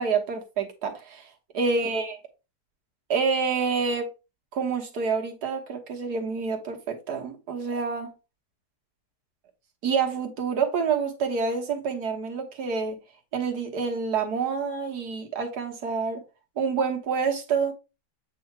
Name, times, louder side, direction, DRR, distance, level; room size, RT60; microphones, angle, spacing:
voice 1, 0.0-1.3 1.5-2.2 3.1-4.1 4.5-8.1 9.8-13.0 13.3-16.2 16.6-17.7, right 5 dB, 70° right, 1.8 m, -27 dB
8.4 x 2.8 x 4.3 m
omnidirectional pair, 1.8 m